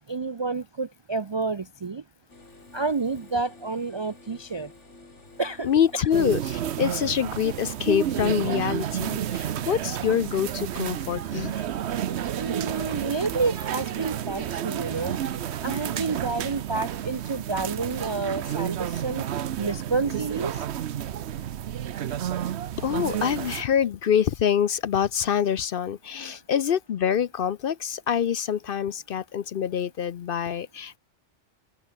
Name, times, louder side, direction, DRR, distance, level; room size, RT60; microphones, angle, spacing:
voice 1, 0.1-2.0 2.7-4.7 5.4-6.1 6.4-6.6 11.3-11.5 12.3-15.2 15.6-19.2 19.6-20.6 26.2-26.4, right 3 dB, 40° right, 0.3 m, -29 dB
sound 1, 2.3-16.6, left 3 dB, 75° left, 4.1 m, -50 dB
voice 2, 5.6-11.5 22.8-31.0, left 8 dB, 60° left, 0.7 m, -25 dB
sound 2, 6.1-23.6, right 10 dB, 65° right, 1.0 m, -31 dB
sound 3, 11.3-11.5 11.8-17.7 18.0-18.1 18.2-18.4, right 1 dB, 15° right, 5.2 m, -58 dB
omnidirectional pair, 1.2 m